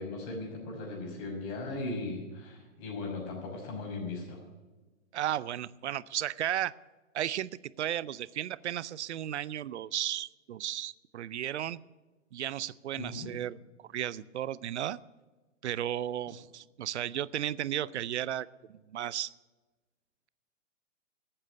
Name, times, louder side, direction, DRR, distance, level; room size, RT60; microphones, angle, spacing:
voice 1, 0.0-4.4 12.9-13.3, left 2 dB, 35° left, 1 dB, 5.8 m, -38 dB
voice 2, 5.1-6.7 7.1-7.5 7.8-11.8 12.3-13.6 13.9-15.0 15.6-19.3, right 11 dB, 60° right, 21 dB, 0.6 m, -34 dB
13.0 x 8.9 x 10.0 m, 1.2 s
hypercardioid pair, 135°, 38 cm